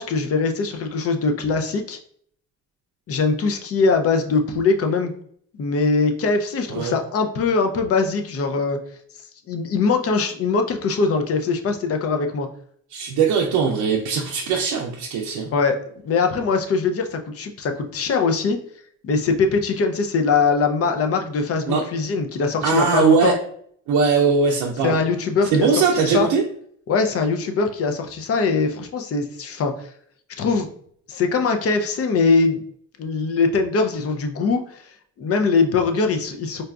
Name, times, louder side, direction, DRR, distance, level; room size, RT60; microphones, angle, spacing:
voice 1, 0.0-2.0 3.1-5.1 5.6-8.8 9.5-12.5 15.3-18.6 19.0-23.3 24.8-26.3 26.9-29.9 30.4-30.7 31.1-32.6 33.0-34.8 35.2-36.6, left 4 dB, 50° left, 5 dB, 0.6 m, -22 dB
voice 2, 12.9-15.5 21.7-21.8 22.6-23.4 23.9-25.0 25.5-26.4, right 5 dB, 90° right, -1 dB, 0.5 m, -20 dB
4.0 x 2.3 x 2.2 m, 0.63 s
cardioid pair, 90°, 30 cm